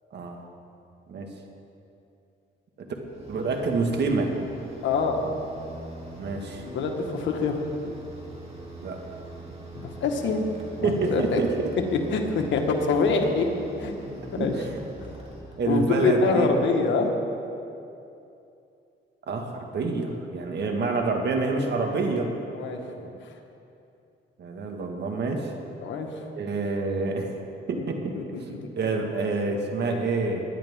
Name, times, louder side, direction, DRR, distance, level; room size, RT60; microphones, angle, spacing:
voice 1, 0.1-0.4 1.1-1.3 2.8-2.9 3.3-4.3 6.2-6.7 8.8-9.0 10.8-11.5 14.4-14.6 15.6-16.5 19.3-22.3 24.4-25.5 26.4-27.3 27.7-28.1 28.4-28.5 28.8-30.4, right 3 dB, 60° right, 3 dB, 1.8 m, -27 dB
sound 1, 3.1-16.0, right 2 dB, 30° right, 3.0 m, -42 dB
voice 2, 4.8-5.3 6.6-7.6 9.7-10.4 10.8-11.4 11.9-13.5 13.8-13.9 14.3-14.5 15.6-17.1 22.5-23.1 25.8-26.1 27.8-27.9 28.1-28.2, left 4 dB, 70° left, 3 dB, 1.6 m, -25 dB
21.0 x 10.5 x 3.7 m, 2.7 s
cardioid pair, 90°, 20 cm